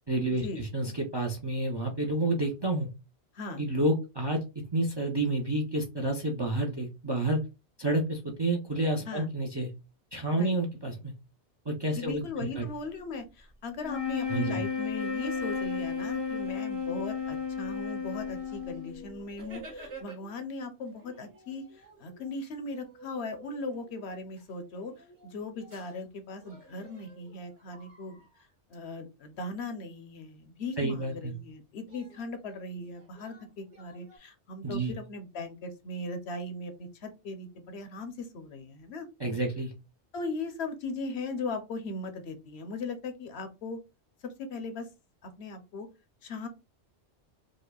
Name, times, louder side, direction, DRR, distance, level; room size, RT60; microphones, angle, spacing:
voice 1, 0.1-2.9 3.6-4.4 4.7-7.4 7.8-9.7 10.1-11.1 11.7-12.6 14.3-14.6 30.8-31.4 34.6-34.9 39.2-39.7, right 2 dB, 35° right, 2 dB, 0.4 m, -29 dB
voice 2, 12.0-28.2 28.7-39.1 40.1-43.8 44.2-44.9 45.2-45.9 46.2-46.5, left 3 dB, 65° left, 7 dB, 0.9 m, -38 dB
sound 1, 13.8-19.3, left 6 dB, 30° left, 0.6 m, -33 dB
sound 2, 15.0-16.8 17.5-17.6 18.0-20.5 20.9-26.1 26.4-28.7 31.9-34.2, right 2 dB, 60° right, 2.1 m, -52 dB
5.0 x 2.0 x 2.3 m, 0.27 s
omnidirectional pair, 1.2 m